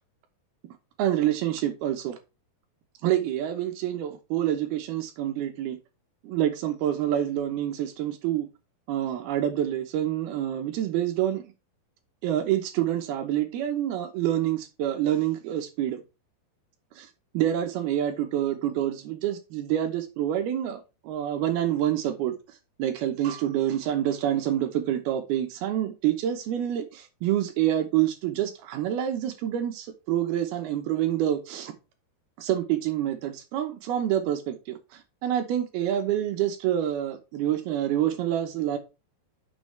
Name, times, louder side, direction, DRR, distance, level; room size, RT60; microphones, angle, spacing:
voice 1, 1.0-2.2 3.0-5.8 6.2-8.5 8.9-11.4 12.2-16.0 17.0-17.1 17.3-22.3 22.8-31.7 32.4-38.8, right 11 dB, 75° right, 2.7 m, -27 dB
8.8 x 6.4 x 3.3 m
omnidirectional pair, 4.8 m